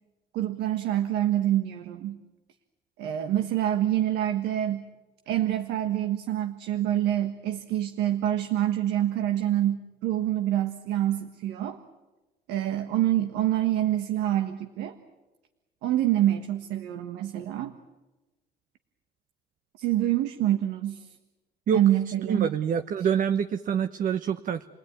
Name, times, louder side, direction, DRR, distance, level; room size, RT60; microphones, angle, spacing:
voice 1, 0.3-2.2 3.0-4.8 5.3-11.8 12.5-15.0 15.8-17.7 19.8-21.1 21.7-22.5, right 12 dB, 90° right, 7 dB, 1.5 m, -26 dB
voice 2, 22.2-24.7, right 7 dB, 55° right, 9 dB, 1.0 m, -26 dB
30.0 x 20.0 x 9.5 m, 1.1 s
cardioid pair, 110°, 17 cm